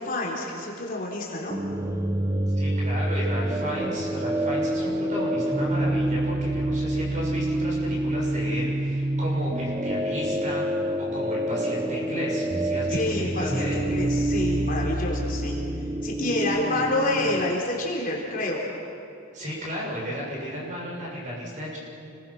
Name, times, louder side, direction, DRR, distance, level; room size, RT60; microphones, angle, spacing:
voice 1, 0.0-1.6 12.9-15.5 16.0-18.6, left 2 dB, 40° left, -2 dB, 4.0 m, -28 dB
sound 1, 1.5-17.5, right 1 dB, 15° right, 0.9 m, -27 dB
voice 2, 2.6-13.0 13.3-13.8 19.3-21.8, equal, 35° right, -4 dB, 7.2 m, -34 dB
30.0 x 22.0 x 6.1 m, 2.6 s
head